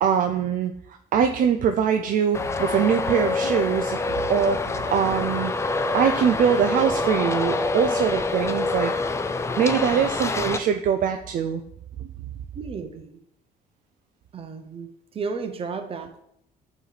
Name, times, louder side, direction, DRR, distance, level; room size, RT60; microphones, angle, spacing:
voice 1, 0.0-0.7 1.1-4.0 4.3-5.5 5.9-8.9 9.6-11.6, right 8 dB, 55° right, 6 dB, 0.4 m, -22 dB
Traffic noise roadway noise, 2.3-10.6, left 3 dB, 15° left, 0.4 m, -26 dB
voice 2, 12.5-13.2 14.3-16.2, right 5 dB, 35° right, 6 dB, 0.8 m, -34 dB
8.0 x 3.2 x 4.0 m, 0.74 s
cardioid pair, 110°, 17 cm